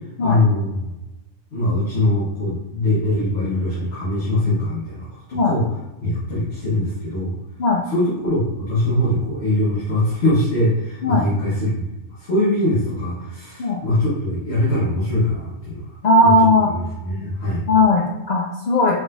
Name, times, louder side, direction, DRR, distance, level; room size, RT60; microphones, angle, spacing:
voice 1, 0.2-0.9 1.5-5.7 6.0-7.4 7.9-11.8 12.1-15.9 16.2-16.3 16.6-17.6, left 1 dB, 55° left, -8 dB, 1.3 m, -22 dB
voice 2, 16.0-16.7 17.7-19.0, left 2 dB, 75° left, -1 dB, 0.4 m, -17 dB
5.0 x 3.6 x 2.5 m, 1.0 s
omnidirectional pair, 1.3 m